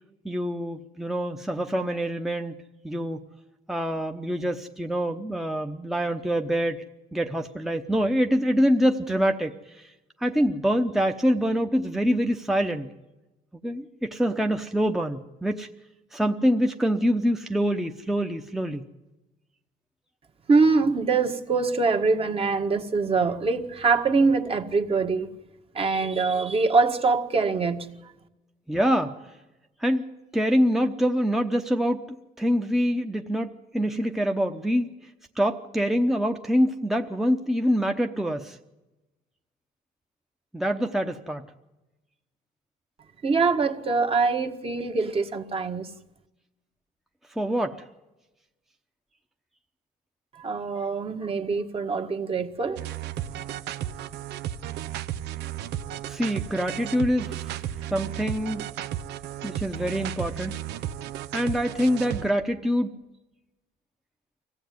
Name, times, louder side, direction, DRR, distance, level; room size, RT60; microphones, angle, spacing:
voice 1, 0.2-2.5 2.8-3.2 3.7-6.8 7.1-9.9 10.2-12.9 13.6-15.7 16.1-18.9 28.7-29.2 29.8-30.0 30.3-35.1 35.4-38.6 40.5-41.5 47.4-47.8 56.1-57.6 57.9-58.6 59.4-60.5 61.3-62.9, equal, ahead, 1.0 m, -25 dB
voice 2, 20.5-25.3 25.7-28.0 43.2-45.9 50.3-52.9, right 4 dB, 35° right, 1.7 m, -24 dB
sound 1, 52.8-62.3, right 11 dB, 85° right, 0.9 m, -34 dB
24.5 x 16.5 x 9.4 m
cardioid pair, 110°, 17 cm